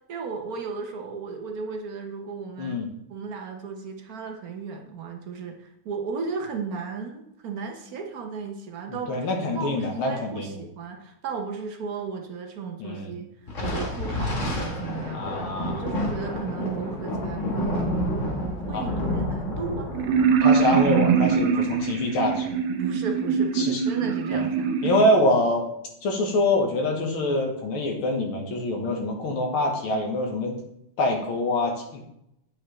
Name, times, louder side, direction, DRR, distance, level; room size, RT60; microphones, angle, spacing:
voice 1, 0.1-2.8 3.1-9.3 9.5-15.3 15.6-18.0 18.7-19.9 22.8-25.0, right 5 dB, 50° right, 3 dB, 1.2 m, -35 dB
voice 2, 2.6-2.9 8.9-10.6 12.8-13.1 15.1-15.9 18.7-18.9 20.4-22.5 23.6-23.8 24.3-24.4 24.8-25.7 26.0-30.6 31.0-32.1, left 1 dB, 75° left, 2 dB, 2.1 m, -25 dB
Thunder, 13.5-22.2, left 1 dB, 40° left, 1.6 m, -30 dB
sound 1, 19.9-25.0, right 6 dB, 85° right, 1.7 m, -23 dB
8.6 x 7.2 x 3.2 m, 0.79 s
omnidirectional pair, 2.4 m